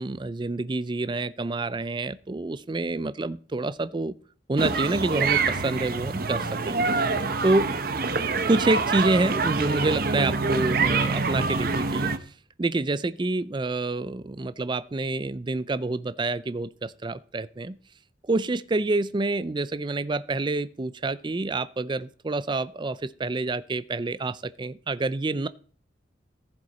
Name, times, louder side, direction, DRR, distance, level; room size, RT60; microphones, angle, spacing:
voice 1, 0.0-4.1 4.5-7.2 7.4-7.7 8.4-12.1 12.6-17.8 18.2-25.5, right 2 dB, 25° right, 15 dB, 0.4 m, -27 dB
sound 1, 4.6-12.2, right 4 dB, 55° right, 0.9 m, -26 dB
14.5 x 7.9 x 4.2 m, 0.43 s
head